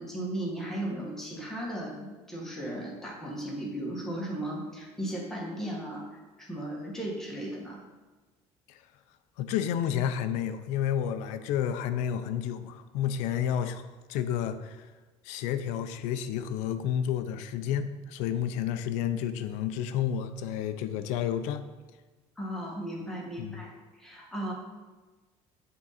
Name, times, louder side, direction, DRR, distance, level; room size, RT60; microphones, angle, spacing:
voice 1, 0.0-6.1 6.4-7.8 22.4-23.7 24.0-24.5, right 1 dB, 5° left, -4 dB, 1.4 m, -36 dB
voice 2, 9.4-13.8 14.1-14.8 15.2-21.6 23.4-23.6, left 9 dB, 90° left, 10 dB, 0.5 m, -30 dB
8.5 x 3.8 x 4.1 m, 1.3 s
cardioid pair, 145°, 12 cm